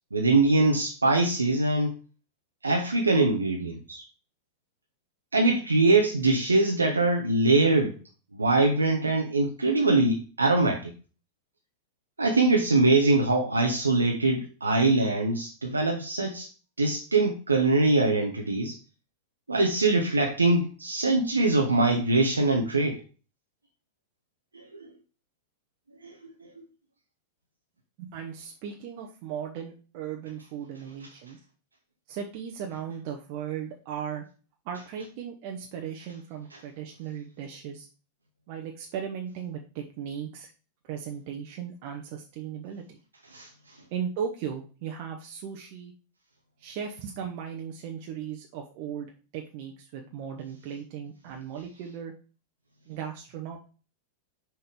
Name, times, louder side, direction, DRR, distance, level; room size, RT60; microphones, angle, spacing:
voice 1, 0.1-1.9 2.6-4.0 5.3-8.0 8.3-10.9 12.2-16.5 16.8-18.8 19.5-23.0 24.5-24.9 26.0-26.2 43.3-43.5, right 2 dB, 80° right, 2 dB, 0.8 m, -23 dB
voice 2, 28.0-31.4 32.1-34.2 34.6-37.9 38.5-40.5 40.8-43.0 43.9-45.9 46.6-52.1 52.9-53.6, right 8 dB, 45° right, 1 dB, 0.9 m, -37 dB
5.9 x 5.5 x 3.3 m, 0.36 s
figure-of-eight pair, 90°, 0 cm